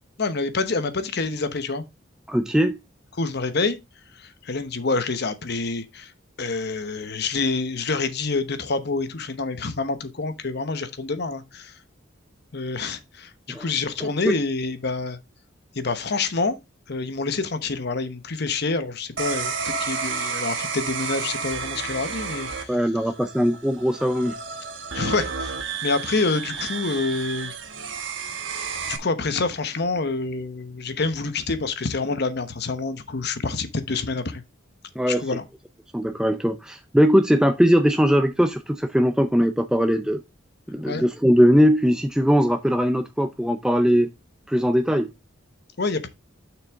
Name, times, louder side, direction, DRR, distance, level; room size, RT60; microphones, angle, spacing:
voice 1, 0.2-1.8 3.2-3.8 4.1-6.1 6.4-11.7 12.5-15.2 15.7-16.6 16.9-22.8 24.9-25.6 25.8-27.5 28.3-28.4 28.9-34.4 35.1-35.4 40.9-41.0 45.8-46.1, left 3 dB, 60° left, 1.0 m, -27 dB
voice 2, 2.3-2.8 13.5-13.7 14.0-14.4 22.7-24.4 35.0-35.2 35.9-40.2 40.7-44.1 44.5-45.1, equal, 5° right, 0.4 m, -20 dB
sound 1, 19.2-29.0, right 5 dB, 70° right, 1.3 m, -31 dB
6.6 x 6.1 x 3.5 m
head